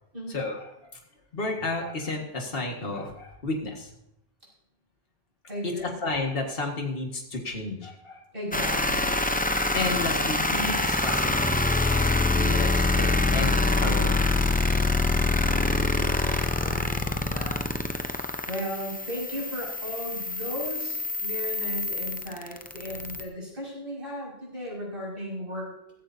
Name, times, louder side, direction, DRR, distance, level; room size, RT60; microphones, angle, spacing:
voice 1, 0.3-0.9 1.3-3.9 5.8-8.2 9.7-14.4, left 2 dB, 65° left, 1 dB, 2.0 m, -32 dB
voice 2, 5.5-6.0 8.3-9.2 15.4-18.1 18.5-25.7, equal, 60° right, -4 dB, 6.1 m, -36 dB
sound 1, 8.5-23.2, left 2 dB, 10° left, 0.6 m, -25 dB
16.0 x 14.5 x 2.7 m, 0.80 s
omnidirectional pair, 1.0 m